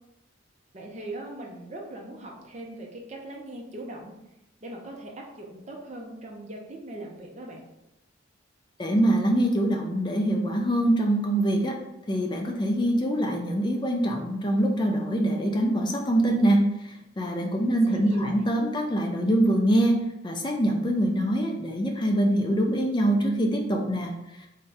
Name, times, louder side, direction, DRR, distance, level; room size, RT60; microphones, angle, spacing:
voice 1, 0.7-4.1 4.6-7.6 17.5-18.3, right 1 dB, 35° right, 0 dB, 0.6 m, -40 dB
voice 2, 8.8-11.8 12.1-24.5, right 1 dB, 20° left, 2 dB, 0.4 m, -24 dB
3.5 x 2.7 x 3.2 m, 0.90 s
head